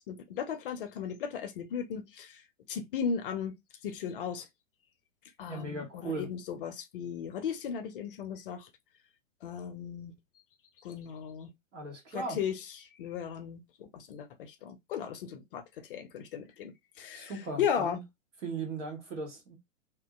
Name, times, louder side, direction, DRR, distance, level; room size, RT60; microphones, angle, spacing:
voice 1, 0.1-2.4 2.7-3.5 3.8-4.5 5.4-8.7 9.4-10.1 10.8-11.5 12.1-18.0, left 7 dB, 45° left, 0.5 m, -36 dB
voice 2, 5.5-6.3 11.7-12.4 17.1-18.0 18.4-19.5, right 3 dB, 65° right, 1.5 m, -37 dB
2.7 x 2.5 x 2.3 m
figure-of-eight pair, 110°, 38 cm